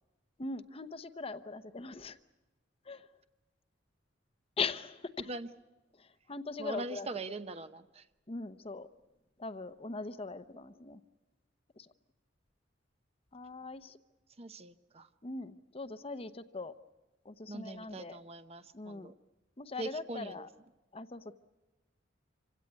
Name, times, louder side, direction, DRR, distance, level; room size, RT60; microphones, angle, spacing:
voice 1, 0.4-2.2 2.9-3.1 4.6-5.3 6.0-7.1 8.3-8.9 9.4-11.0 11.8-11.9 13.3-14.0 15.2-16.7 17.2-18.2 18.7-19.1 19.6-20.5 20.9-21.3, left 4 dB, 30° left, 11 dB, 0.8 m, -40 dB
voice 2, 6.6-8.1 14.4-15.1 17.5-19.1 19.8-20.5, right 2 dB, 35° right, 11 dB, 0.8 m, -42 dB
26.5 x 17.0 x 9.5 m, 1.2 s
head